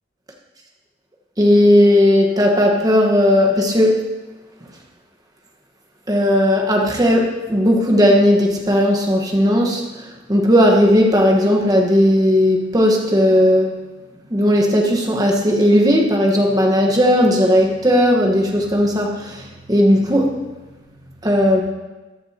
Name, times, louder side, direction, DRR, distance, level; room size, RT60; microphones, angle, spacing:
voice 1, 1.4-4.0 6.1-13.8 14.3-20.4 21.2-21.6, equal, 20° right, 1 dB, 1.2 m, -16 dB
14.0 x 8.9 x 2.9 m, 1.2 s
head